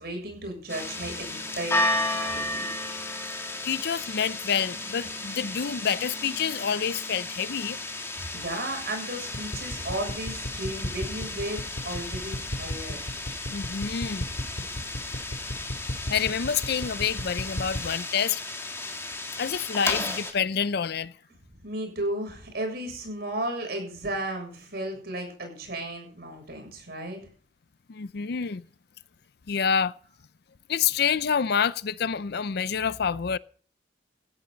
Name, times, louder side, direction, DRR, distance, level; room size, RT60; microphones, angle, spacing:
voice 1, 0.0-2.7 8.3-13.0 21.6-27.2, right 1 dB, 60° right, 7.3 m, -34 dB
sound 1, 0.7-20.3, left 2 dB, 15° left, 3.0 m, -34 dB
voice 2, 3.6-7.8 13.5-14.3 16.1-18.4 19.4-21.1 27.9-28.7 29.5-29.9 30.7-33.4, left 7 dB, 60° left, 0.5 m, -27 dB
sound 2, 9.3-17.9, left 1 dB, 75° left, 2.8 m, -33 dB
16.5 x 14.0 x 4.0 m
head